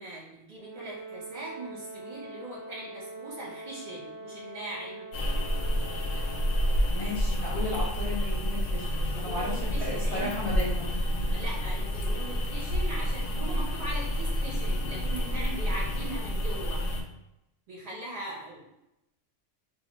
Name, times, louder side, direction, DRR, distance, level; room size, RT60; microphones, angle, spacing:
voice 1, 0.0-5.1 9.1-10.4 11.3-16.8 17.7-18.7, right 1 dB, 55° right, -6 dB, 1.2 m, -40 dB
Brass instrument, 0.6-7.0, right 2 dB, 10° left, 1.2 m, -43 dB
sound 1, 5.1-17.0, equal, 90° left, 0.9 m, -29 dB
voice 2, 6.9-10.9, left 1 dB, 45° left, -6 dB, 0.4 m, -35 dB
2.7 x 2.3 x 3.0 m, 0.88 s
omnidirectional pair, 1.3 m